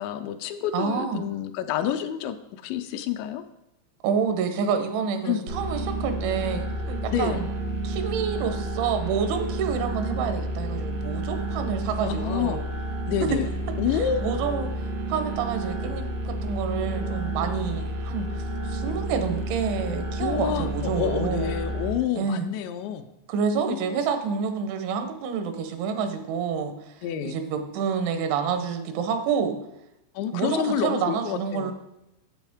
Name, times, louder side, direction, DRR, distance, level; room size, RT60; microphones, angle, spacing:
voice 1, 0.0-3.4 5.3-5.4 7.1-7.5 12.0-12.6 13.1-13.5 13.8-14.3 20.2-23.0 23.6-23.9 27.0-27.4 30.2-31.7, left 9 dB, 85° left, 8 dB, 2.7 m, -28 dB
voice 2, 0.7-1.2 4.0-7.5 7.8-12.6 13.3-13.4 13.9-14.7 15.1-18.3 18.7-21.6 22.2-22.5 23.3-26.9 27.2-29.6 30.3-31.7, right 6 dB, 85° right, 7 dB, 3.3 m, -28 dB
sound 1, 5.5-21.9, right 1 dB, 70° right, 1.0 m, -30 dB
9.1 x 7.9 x 3.5 m, 0.90 s
omnidirectional pair, 5.3 m